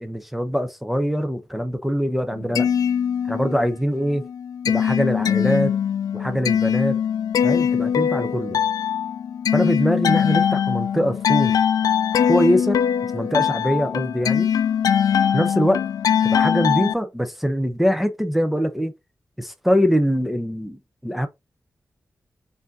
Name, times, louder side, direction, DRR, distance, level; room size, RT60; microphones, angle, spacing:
voice 1, 0.0-2.7 3.3-4.2 4.7-5.7 6.1-7.0 7.4-8.6 9.5-11.6 12.3-12.8 13.1-14.5 15.3-15.8 16.2-18.9 19.4-21.3, equal, 5° right, 0.6 m, -23 dB
sound 1, 2.3-3.8 4.1-16.9, left 8 dB, 90° left, 0.4 m, -21 dB
4.9 x 2.7 x 3.7 m
cardioid pair, 65°, 6 cm